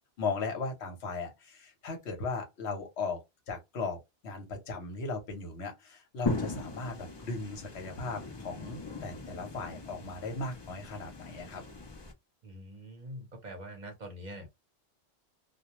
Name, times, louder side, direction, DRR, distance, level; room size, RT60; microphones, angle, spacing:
voice 1, 0.2-4.0 4.2-11.6, left 3 dB, 75° left, 1.1 m, -37 dB
sound 1, 6.3-12.1, left 3 dB, 30° left, 0.5 m, -40 dB
voice 2, 12.4-14.5, equal, 45° right, 0.8 m, -44 dB
2.3 x 2.2 x 2.8 m
omnidirectional pair, 1.1 m